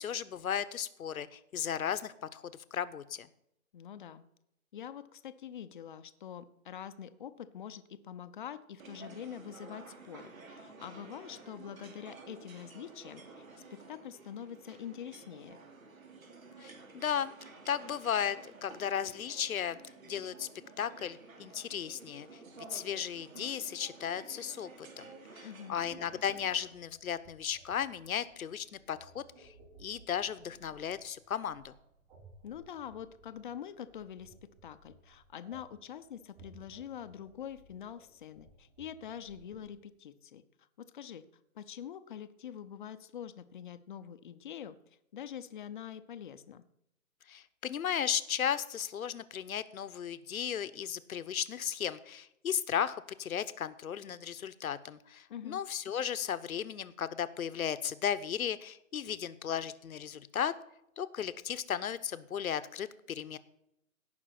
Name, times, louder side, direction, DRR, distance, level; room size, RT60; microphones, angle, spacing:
voice 1, 0.0-3.3 16.6-17.3 17.7-20.5 20.8-22.3 22.7-29.5 29.8-31.7 47.3-60.5 61.0-63.4, left 8 dB, 75° left, 14 dB, 1.0 m, -35 dB
voice 2, 3.7-4.2 4.7-13.2 13.7-15.6 25.4-25.8 32.4-34.3 34.6-40.4 40.8-41.2 41.5-44.8 45.1-46.6 55.3-55.6, left 9 dB, 35° left, 11 dB, 0.7 m, -45 dB
sound 1, 8.8-26.7, right 3 dB, 70° right, 3.1 m, -52 dB
sound 2, 25.9-39.7, right 3 dB, 40° right, 5.1 m, -60 dB
17.0 x 6.1 x 5.9 m, 0.81 s
hypercardioid pair, 155°, 43 cm